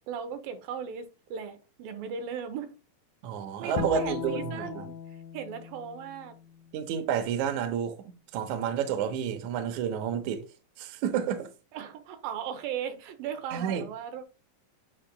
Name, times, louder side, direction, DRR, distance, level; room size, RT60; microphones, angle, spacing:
voice 1, 0.1-2.7 3.6-4.9 5.3-6.4 11.7-14.2, right 7 dB, 85° right, 2.6 m, -37 dB
voice 2, 3.2-4.8 6.7-10.4 10.8-11.5 13.5-13.9, right 8 dB, 70° right, 2.0 m, -30 dB
Bowed string instrument, 3.8-7.0, left 8 dB, 80° left, 1.9 m, -38 dB
8.8 x 5.7 x 2.2 m
omnidirectional pair, 4.0 m